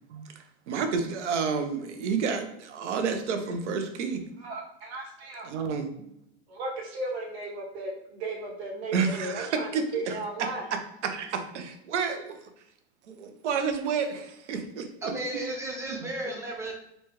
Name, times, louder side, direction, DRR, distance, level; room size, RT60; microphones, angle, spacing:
voice 1, 0.1-4.2 5.4-5.9 8.9-10.1 11.0-12.4 13.1-15.4 15.9-16.3, right 5 dB, 85° right, 7 dB, 0.7 m, -30 dB
voice 2, 4.4-5.5 6.5-10.7, right 2 dB, 65° right, -2 dB, 1.5 m, -35 dB
voice 3, 15.0-16.7, right 1 dB, 10° right, -1 dB, 0.5 m, -34 dB
4.1 x 2.3 x 3.1 m, 0.79 s
supercardioid pair, 140°, 34 cm